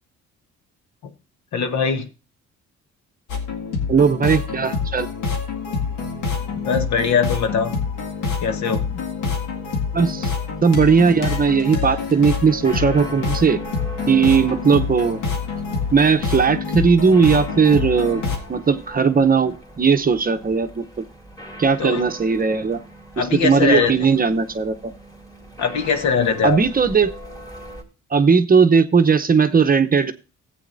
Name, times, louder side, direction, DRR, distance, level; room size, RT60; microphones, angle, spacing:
voice 1, 1.5-2.1 6.6-7.8 8.4-9.0 21.8-22.0 23.2-24.2 25.6-26.6, left 6 dB, 65° left, 1.2 m, -21 dB
sound 1, 3.3-18.4, left 5 dB, 85° left, 2.0 m, -26 dB
voice 2, 3.9-5.1 9.9-10.3 10.6-13.6 14.1-15.2 15.9-18.2 18.5-21.0 21.6-22.8 23.2-24.7 26.4-27.1 28.1-30.1, right 5 dB, 30° right, 0.7 m, -17 dB
sound 2, 12.1-27.8, equal, 10° left, 2.6 m, -40 dB
14.5 x 8.4 x 2.6 m
cardioid pair, 90°, 30 cm